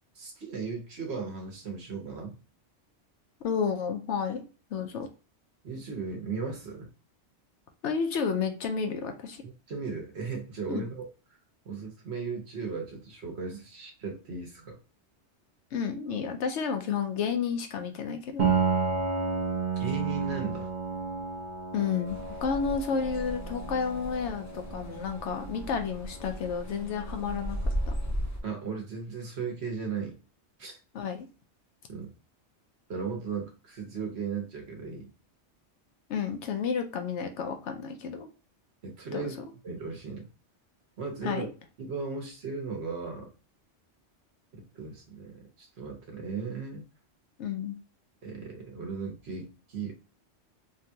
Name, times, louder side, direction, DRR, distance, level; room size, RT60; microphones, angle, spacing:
voice 1, 0.2-2.4 5.6-6.9 9.4-11.1 11.6-14.8 19.8-20.7 28.4-30.2 30.6-30.7 31.9-32.1 32.9-35.1 38.8-39.3 39.6-40.3 41.0-41.5 41.8-43.3 44.5-46.8 48.2-49.9, right 5 dB, 65° right, 2 dB, 1.2 m, -36 dB
voice 2, 3.4-4.4 4.7-5.1 7.8-9.4 10.7-10.8 15.7-18.4 21.7-27.6 27.9-28.0 30.9-31.3 36.1-38.3 39.1-39.4 41.2-41.5 47.4-47.7, left 6 dB, 80° left, 6 dB, 0.9 m, -31 dB
Piano, 18.4-28.0, right 5 dB, 45° right, 0.8 m, -33 dB
sound 1, 22.1-28.4, equal, 20° left, 0.5 m, -36 dB
3.5 x 2.3 x 2.7 m, 0.34 s
omnidirectional pair, 1.2 m